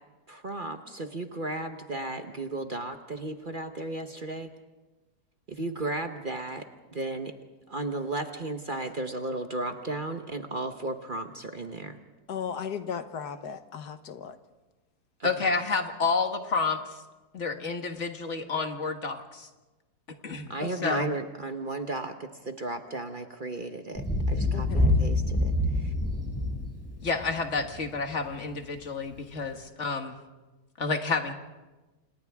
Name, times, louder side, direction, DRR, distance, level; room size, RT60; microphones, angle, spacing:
voice 1, 0.3-4.5 5.5-6.6 6.9-7.3 7.7-12.0 15.2-15.5 20.5-25.9, right 2 dB, 35° right, 6 dB, 1.1 m, -34 dB
voice 2, 12.3-14.4 20.6-20.7 24.5-25.0, left 7 dB, 80° left, 9 dB, 1.6 m, -36 dB
voice 3, 15.2-16.8 17.3-19.5 20.2-20.5 20.8-21.1 27.0-30.2 30.8-31.3, left 4 dB, 45° left, 5 dB, 1.8 m, -29 dB
Thunder, 23.9-27.8 29.1-29.2, left 1 dB, 10° left, 5.5 m, -26 dB
29.5 x 27.5 x 3.6 m, 1.1 s
omnidirectional pair, 1.7 m